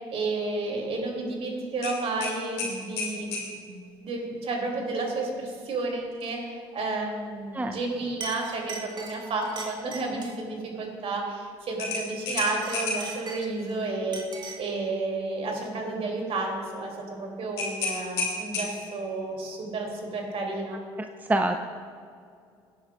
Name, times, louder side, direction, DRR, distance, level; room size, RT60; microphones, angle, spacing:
voice 1, 0.1-3.3 3.6-20.8, right 3 dB, 50° right, 1 dB, 2.8 m, -31 dB
sound 1, 1.8-3.5 6.1-6.3 6.8-6.9 11.8-13.2 17.6-19.0, left 3 dB, 85° left, 2.4 m, -31 dB
Chink clink, 7.7-7.9 8.2-10.4 12.2-13.7 14.1-14.7, right 3 dB, 35° right, 1.9 m, -40 dB
voice 2, 21.2-21.6, right 2 dB, 10° right, 6 dB, 0.6 m, -25 dB
17.5 x 9.5 x 2.4 m, 2.3 s
hypercardioid pair, 60°, 13 cm